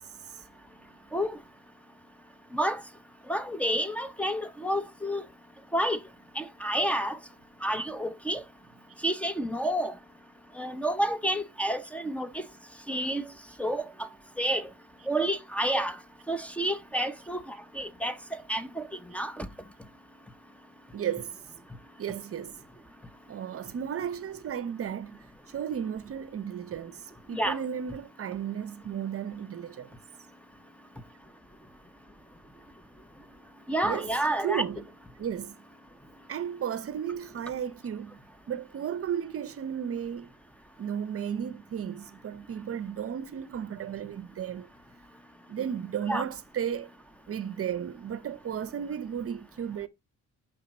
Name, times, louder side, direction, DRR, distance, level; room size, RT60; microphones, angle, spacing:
voice 1, 3.3-5.2 5.7-6.0 6.4-7.2 7.6-8.4 9.0-9.9 10.6-12.3 12.9-13.2 13.6-14.1 14.4-14.6 15.1-16.0 16.3-17.4 17.7-18.1 18.5-18.8 19.1-19.5 27.3-27.6 33.7-34.6 46.1-46.2, right 1 dB, 5° left, 0.8 m, -29 dB
voice 2, 20.9-21.3 22.0-22.6 23.3-29.9 33.8-34.9 35.2-35.6 36.3-38.2 38.5-40.3 40.8-44.7 45.5-46.9 47.3-49.9, right 8 dB, 50° right, 0.7 m, -34 dB
6.0 x 5.1 x 4.3 m
cardioid pair, 90°, 30 cm